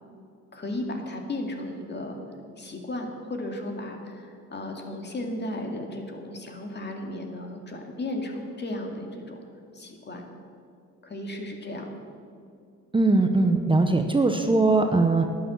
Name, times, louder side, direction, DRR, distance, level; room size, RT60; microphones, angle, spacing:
voice 1, 0.5-2.2 2.6-9.4 9.7-10.2 11.0-11.9, left 1 dB, 35° left, 3 dB, 2.3 m, -35 dB
voice 2, 12.9-15.2, right 3 dB, 15° right, 5 dB, 0.8 m, -20 dB
11.5 x 9.7 x 7.6 m, 2.5 s
cardioid pair, 90°, 30 cm